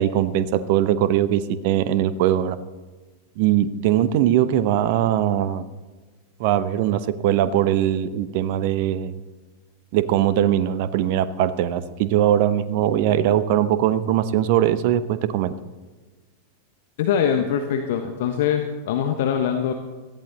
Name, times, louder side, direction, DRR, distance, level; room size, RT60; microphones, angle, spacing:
voice 1, 0.0-2.6 3.4-5.7 6.4-9.2 9.9-15.5, right 11 dB, 50° right, 14 dB, 0.9 m, -21 dB
voice 2, 17.0-19.7, left 8 dB, 55° left, 6 dB, 1.2 m, -23 dB
17.5 x 14.0 x 4.1 m, 1.3 s
figure-of-eight pair, 90°, 0 cm